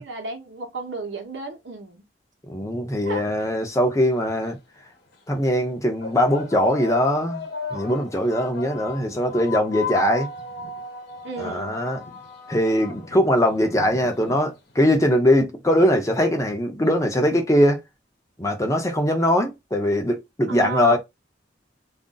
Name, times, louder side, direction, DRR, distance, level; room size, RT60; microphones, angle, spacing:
voice 1, 0.0-2.0 3.0-3.2 11.2-11.8 20.5-21.0, right 3 dB, 80° right, 1.0 m, -33 dB
voice 2, 2.5-4.6 5.3-7.4 7.7-10.3 11.4-12.0 12.5-17.8 18.4-21.0, equal, 15° left, 0.7 m, -21 dB
sound 1, 3.9-4.0 4.9-5.1 6.0-14.9, left 5 dB, 60° left, 1.0 m, -36 dB
2.6 x 2.1 x 3.7 m
head